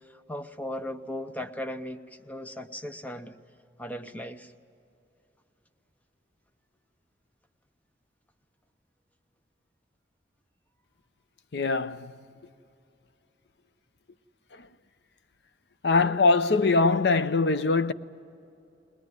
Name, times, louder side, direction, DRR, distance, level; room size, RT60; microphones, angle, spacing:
voice 1, 0.1-3.4 3.8-4.5, left 1 dB, 10° left, 0.7 m, -37 dB
voice 2, 11.5-12.1 15.8-17.9, left 3 dB, 65° left, 0.6 m, -22 dB
21.5 x 21.0 x 9.5 m
head